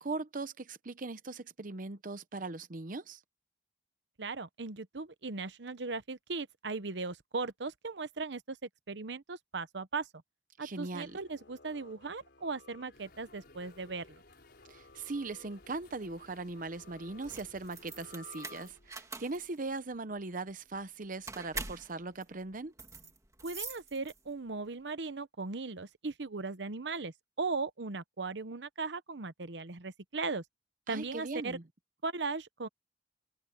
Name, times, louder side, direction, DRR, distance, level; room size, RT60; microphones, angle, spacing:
voice 1, 0.0-3.2 10.6-11.2 14.7-22.7 30.9-31.6, right 3 dB, 50° right, 0.8 m, -39 dB
voice 2, 4.2-10.1 10.6-14.2 23.4-30.4 30.9-31.6 32.0-32.7, right 4 dB, 80° right, 1.0 m, -38 dB
sound 1, 10.9-19.2, left 3 dB, 80° left, 3.6 m, -57 dB
sound 2, 12.9-18.2, left 2 dB, 60° left, 6.5 m, -60 dB
sound 3, 17.2-24.5, right 3 dB, 20° right, 2.0 m, -45 dB
head